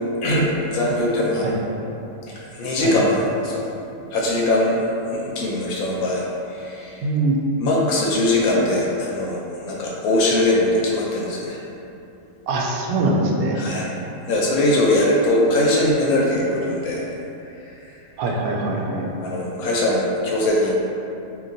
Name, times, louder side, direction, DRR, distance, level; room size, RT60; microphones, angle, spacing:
voice 1, 0.2-1.4 2.3-3.6 4.1-4.8 5.1-6.2 6.5-7.0 7.6-11.6 13.5-13.9 14.3-17.1 19.2-20.7, left 1 dB, 70° left, -3 dB, 1.0 m, -21 dB
voice 2, 7.0-7.4 12.5-13.6 18.2-19.1, right 2 dB, 75° right, -1 dB, 1.0 m, -22 dB
4.3 x 2.9 x 2.6 m, 2.9 s
omnidirectional pair, 1.7 m